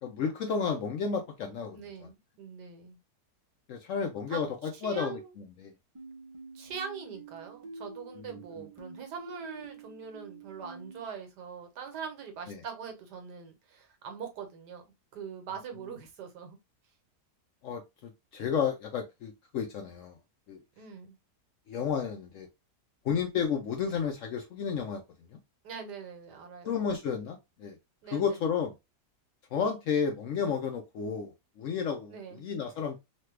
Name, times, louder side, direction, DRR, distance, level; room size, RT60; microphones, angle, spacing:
voice 1, 0.0-1.8 3.7-5.2 5.6-5.7 8.6-8.7 12.5-12.6 17.6-20.2 20.5-20.6 21.7-22.5 23.0-25.0 26.6-27.8 28.1-28.7 29.5-33.0, left 6 dB, 70° left, 0.7 m, -32 dB
voice 2, 1.7-3.0 4.3-4.4 4.7-5.3 6.5-14.8 15.1-16.6 20.8-21.2 25.6-26.8 28.0-28.4 32.1-32.4, right 6 dB, 85° right, 1.5 m, -42 dB
sound 1, 5.9-11.0, right 3 dB, 50° right, 0.3 m, -47 dB
3.2 x 2.2 x 3.1 m
omnidirectional pair, 1.7 m